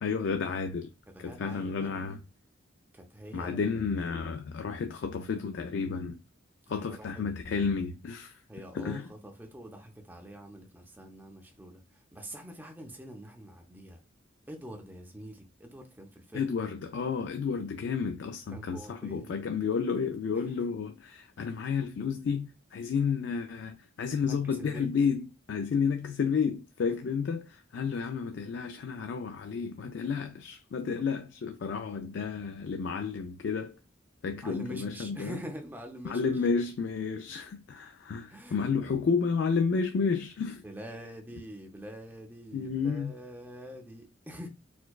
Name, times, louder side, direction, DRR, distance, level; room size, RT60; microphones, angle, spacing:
voice 1, 0.0-0.9 1.2-2.2 3.3-6.1 6.7-8.3 8.7-9.0 16.3-25.2 25.5-33.7 34.2-35.3 36.1-40.6 42.5-43.1, left 5 dB, 60° left, 0.3 m, -31 dB
voice 2, 1.1-2.1 2.9-3.7 6.6-7.3 8.5-14.0 14.5-16.5 18.5-19.3 20.3-20.7 24.2-24.9 34.4-36.5 38.3-38.6 40.6-44.5, equal, 10° right, 0.5 m, -45 dB
4.5 x 2.2 x 2.2 m
head